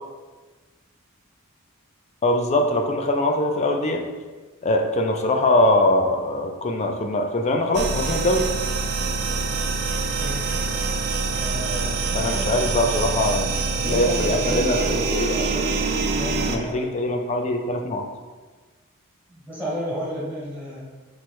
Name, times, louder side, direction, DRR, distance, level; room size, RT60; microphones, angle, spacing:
voice 1, 2.2-4.1 4.6-8.5 12.1-15.3 16.4-18.1, left 1 dB, 30° left, 3 dB, 0.4 m, -22 dB
sound 1, 7.7-16.6, right 4 dB, 50° right, 0.3 m, -25 dB
voice 2, 11.4-12.8 13.8-16.9 19.3-20.8, equal, 10° left, -8 dB, 1.0 m, -32 dB
4.6 x 2.1 x 4.5 m, 1.3 s
head